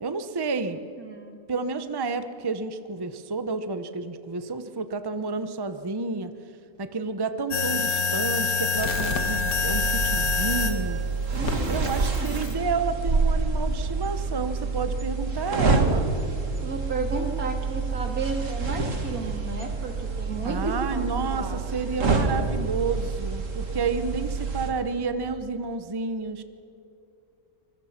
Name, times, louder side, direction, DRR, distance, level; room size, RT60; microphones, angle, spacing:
voice 1, 0.0-0.8 1.5-6.3 6.8-11.0 11.7-16.1 20.4-26.4, right 4 dB, 20° right, 10 dB, 0.8 m, -30 dB
voice 2, 0.7-1.4 11.3-12.5 16.6-21.6, right 3 dB, 80° right, 4 dB, 2.8 m, -33 dB
sound 1, 7.5-10.8 11.5-12.5, left 5 dB, 80° left, 1.9 m, -26 dB
sound 2, 8.8-24.7, right 4 dB, 60° right, 2.4 m, -28 dB
25.5 x 21.5 x 5.9 m, 2.6 s
omnidirectional pair, 1.5 m